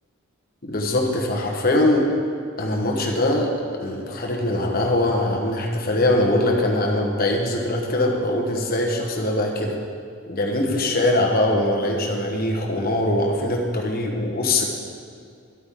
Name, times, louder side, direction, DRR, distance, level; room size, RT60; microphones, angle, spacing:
voice 1, 0.6-2.1 2.6-9.8 10.3-14.7, left 1 dB, 45° left, 1 dB, 1.1 m, -22 dB
10.5 x 8.7 x 3.6 m, 2.3 s
head